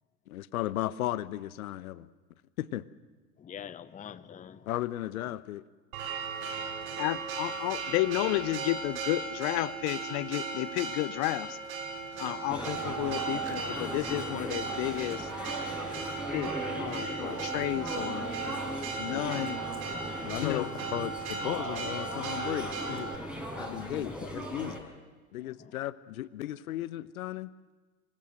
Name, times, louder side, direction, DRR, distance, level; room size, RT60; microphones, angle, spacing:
voice 1, 0.3-2.1 2.6-2.8 4.7-5.6 19.1-19.2 20.2-23.1 23.6-24.9 25.3-27.5, left 14 dB, 65° left, 15 dB, 1.1 m, -35 dB
voice 2, 3.4-4.7 6.4-7.1 12.1-12.6 15.9-16.7 17.1-17.2 20.2-20.3 23.7-24.3 25.4-25.7, left 9 dB, 15° left, 14 dB, 0.9 m, -48 dB
Church bell, 5.9-23.2, right 5 dB, 65° right, 3.5 m, -37 dB
voice 3, 7.0-11.6 12.2-15.2 16.3-16.5 16.8-18.3 19.0-19.6 20.4-20.7, left 19 dB, 45° left, 18 dB, 1.0 m, -32 dB
sound 1, 12.5-24.8, equal, ahead, 6.3 m, -38 dB
26.0 x 24.0 x 6.6 m, 1.3 s
hypercardioid pair, 90°, 45 cm